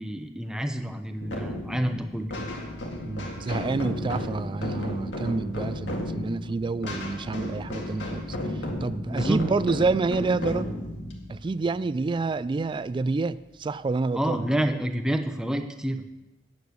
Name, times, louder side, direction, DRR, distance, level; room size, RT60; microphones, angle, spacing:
voice 1, 0.0-2.3 9.1-9.4 14.1-16.0, right 1 dB, 5° right, 6 dB, 0.8 m, -28 dB
sound 1, 1.2-12.6, left 1 dB, 75° left, 2.0 m, -34 dB
voice 2, 3.0-8.3 8.5-10.7 11.3-14.4, right 3 dB, 25° right, 16 dB, 0.3 m, -28 dB
9.4 x 8.1 x 6.6 m, 1.0 s
head